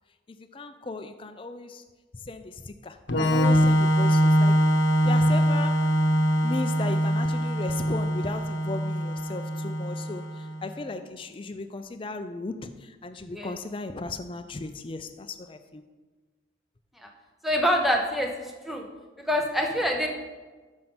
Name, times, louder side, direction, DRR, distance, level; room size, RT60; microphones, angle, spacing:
voice 1, 0.3-1.8 2.3-4.5 5.0-5.9 6.4-15.8, left 3 dB, 25° left, 9 dB, 0.4 m, -36 dB
Organ, 3.1-10.6, equal, 70° left, 0.9 m, -23 dB
voice 2, 17.4-18.9 19.3-20.1, equal, ahead, 2 dB, 0.7 m, -26 dB
7.1 x 5.3 x 5.9 m, 1.3 s
head